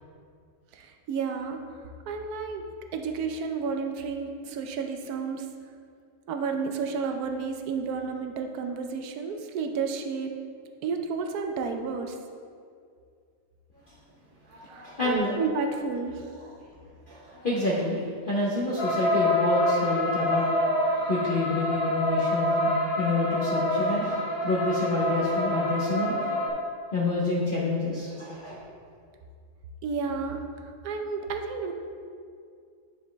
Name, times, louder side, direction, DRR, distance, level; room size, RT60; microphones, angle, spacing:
voice 1, 0.7-1.6 2.1-2.6 2.9-5.5 6.3-10.3 10.8-12.2 14.7-16.3 29.8-30.4 30.8-31.7, right 5 dB, 75° right, 5 dB, 1.2 m, -31 dB
voice 2, 14.5-15.4 17.1-26.4 26.9-28.6, left 2 dB, 40° left, -7 dB, 1.0 m, -28 dB
sound 1, 18.8-26.5, left 1 dB, 20° left, 1.3 m, -26 dB
9.7 x 5.3 x 3.3 m, 2.3 s
omnidirectional pair, 1.7 m